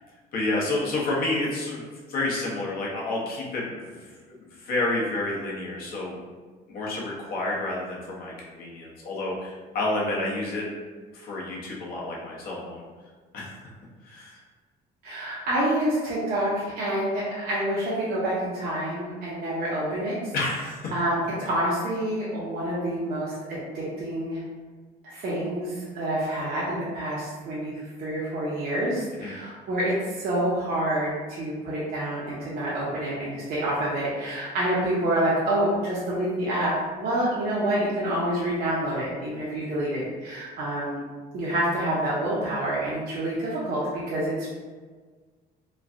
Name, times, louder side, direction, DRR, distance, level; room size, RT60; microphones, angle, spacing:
voice 1, 0.3-1.8 2.1-3.9 4.3-6.2 6.7-10.7 11.1-12.8 13.3-13.5 14.0-14.4 20.3-20.9 29.2-29.3, left 2 dB, 60° left, -4 dB, 0.9 m, -29 dB
voice 2, 15.0-20.1 20.9-24.4 25.0-41.0 41.3-44.5, right 1 dB, 65° right, -8 dB, 0.8 m, -27 dB
3.1 x 2.2 x 2.5 m, 1.4 s
cardioid pair, 110°, 17 cm